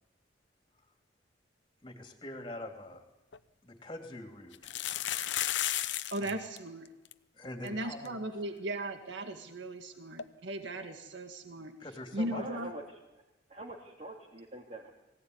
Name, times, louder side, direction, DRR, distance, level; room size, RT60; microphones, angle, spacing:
voice 1, 1.8-3.0 3.6-5.0 6.2-6.3 7.3-8.1 11.8-12.4, left 1 dB, 25° left, 4 dB, 3.2 m, -44 dB
sound 1, 2.9-3.0 3.3-3.4 4.5-6.3 6.6-6.7 6.9-7.1 7.7-7.8 8.1-8.2 10.2-10.3, left 12 dB, 70° left, 0.9 m, -33 dB
voice 2, 6.1-6.9 7.6-11.7 12.1-12.7, right 1 dB, 65° right, 6 dB, 1.9 m, -37 dB
voice 3, 12.3-12.8 13.5-14.9, right 2 dB, 35° right, -2 dB, 2.7 m, -44 dB
23.0 x 16.5 x 9.6 m, 1.0 s
head